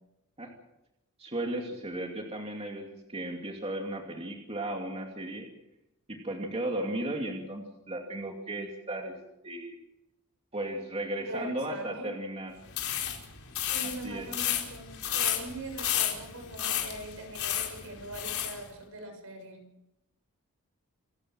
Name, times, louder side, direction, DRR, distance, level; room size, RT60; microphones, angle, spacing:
voice 1, 1.2-5.5 6.1-9.2 9.4-9.8 10.5-12.5 14.0-14.3, right 1 dB, 30° right, 1 dB, 2.7 m, -35 dB
voice 2, 11.2-12.1 13.6-19.6, right 1 dB, 70° right, 6 dB, 6.8 m, -42 dB
sound 1, 12.7-18.6, left 11 dB, 70° left, 4.5 m, -32 dB
28.0 x 14.5 x 7.5 m, 0.90 s
head